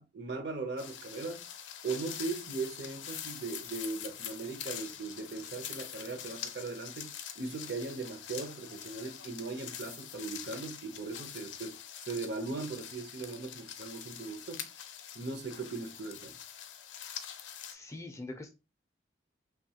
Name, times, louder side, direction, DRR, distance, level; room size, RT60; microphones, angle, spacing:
voice 1, 0.0-1.4 1.8-11.8 12.1-14.7 15.1-16.4, right 3 dB, 65° right, 0.6 m, -39 dB
sound 1, 0.8-17.7, left 9 dB, 80° left, 0.4 m, -44 dB
voice 2, 17.7-18.5, left 2 dB, 15° left, 0.3 m, -43 dB
3.0 x 2.2 x 2.7 m
head